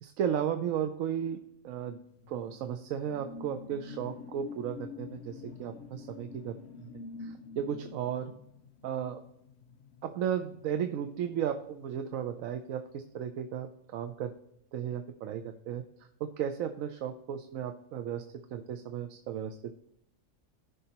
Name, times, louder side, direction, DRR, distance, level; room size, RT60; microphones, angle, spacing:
voice 1, 0.0-2.0 2.3-6.6 7.2-8.3 8.8-9.2 10.0-14.3 14.7-18.2 18.5-19.6, right 9 dB, 85° right, 7 dB, 1.0 m, -35 dB
sound 1, 2.2-11.2 11.5-11.8, left 5 dB, 60° left, 0.8 m, -47 dB
14.5 x 5.5 x 2.9 m, 0.77 s
omnidirectional pair, 1.4 m